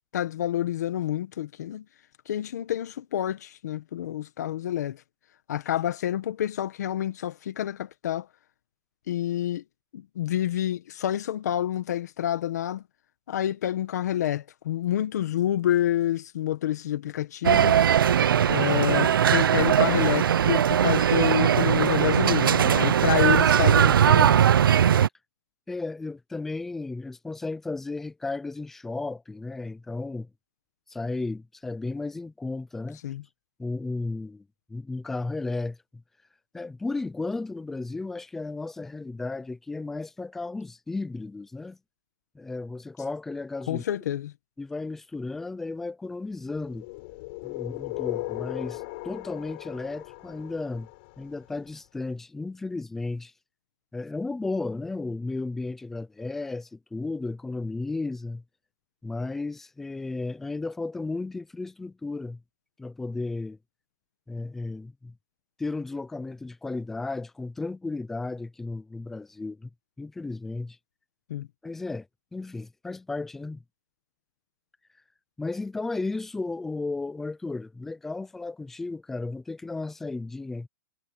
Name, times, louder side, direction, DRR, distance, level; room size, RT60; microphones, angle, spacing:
voice 1, 0.1-1.8 2.2-5.0 5.5-8.3 9.1-9.6 9.9-12.8 13.3-17.7 18.5-24.4 33.0-33.2 43.7-44.3 71.3-71.5, left 12 dB, 50° left, 1.5 m, -28 dB
sound 1, 17.4-25.1, right 9 dB, 90° right, 0.8 m, -20 dB
voice 2, 25.7-30.3 30.9-33.0 33.6-36.0 36.5-41.8 42.3-43.8 44.6-46.8 47.4-50.9 51.2-53.3 53.9-58.4 59.0-62.4 62.8-63.6 64.3-65.1 65.6-69.7 70.0-70.8 71.6-72.1 72.3-73.6 75.4-80.7, left 3 dB, 5° left, 0.5 m, -34 dB
sound 2, 46.5-51.5, left 26 dB, 30° left, 5.6 m, -37 dB
hypercardioid pair, 175°, 11 cm